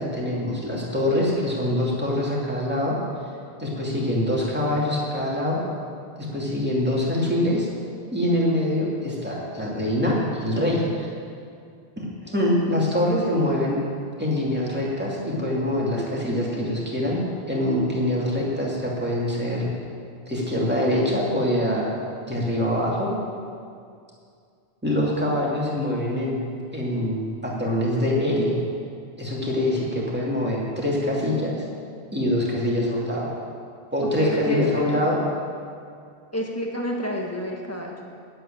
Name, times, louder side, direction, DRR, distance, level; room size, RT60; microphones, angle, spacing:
voice 1, 0.0-3.0 3.6-5.6 6.3-7.7 8.1-11.1 12.0-13.8 14.2-17.2 17.5-19.7 20.3-21.9 22.3-23.1 24.8-26.4 26.7-28.5 29.2-31.6 32.1-33.3 33.9-35.2, left 1 dB, 10° right, -5 dB, 2.5 m, -24 dB
voice 2, 34.2-35.0 36.3-38.1, equal, 15° left, -1 dB, 1.5 m, -28 dB
9.2 x 8.0 x 8.9 m, 2.3 s
omnidirectional pair, 1.0 m